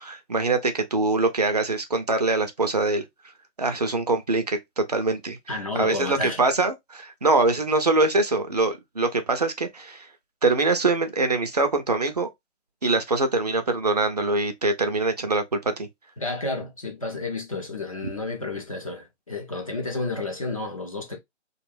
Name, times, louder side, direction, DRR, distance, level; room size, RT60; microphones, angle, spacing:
voice 1, 0.0-3.0 3.6-5.4 5.8-10.1 10.4-12.3 12.8-15.9, right 3 dB, 35° right, 0.4 m, -23 dB
voice 2, 5.5-6.4 16.2-21.2, left 3 dB, 30° left, 0.4 m, -31 dB
2.3 x 2.2 x 3.1 m
figure-of-eight pair, 150°, 36 cm